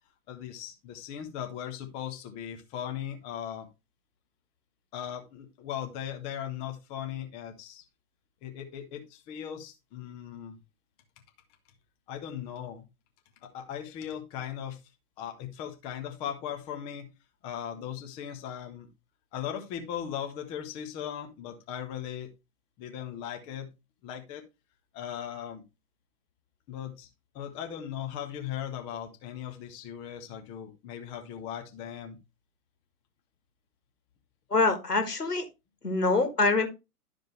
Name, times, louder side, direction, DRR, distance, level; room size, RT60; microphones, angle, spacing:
voice 1, 0.3-3.7 4.9-7.8 8.4-10.6 12.1-12.8 13.4-14.8 15.2-17.1 17.4-18.9 19.3-22.3 22.8-23.7 24.0-24.4 24.9-25.6 26.7-27.1 27.3-32.2, left 9 dB, 10° left, 5 dB, 0.6 m, -38 dB
voice 2, 34.5-35.5 35.8-36.7, left 3 dB, 80° left, 7 dB, 1.9 m, -25 dB
11.5 x 5.0 x 3.1 m, 0.25 s
figure-of-eight pair, 115°, 46 cm